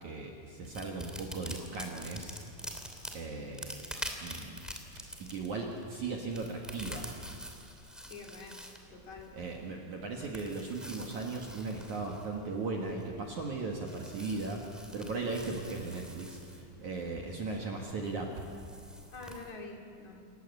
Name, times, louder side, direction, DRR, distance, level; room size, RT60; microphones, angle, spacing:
voice 1, 0.0-2.4 3.1-3.8 4.2-4.6 5.2-7.1 9.3-18.3, right 3 dB, 55° right, 0 dB, 2.4 m, -37 dB
sound 1, 0.6-19.5, equal, ahead, 0.5 m, -47 dB
voice 2, 8.1-8.6 8.9-9.3 19.1-20.3, left 3 dB, 45° left, 1 dB, 3.4 m, -46 dB
28.0 x 15.5 x 9.6 m, 2.3 s
omnidirectional pair, 5.4 m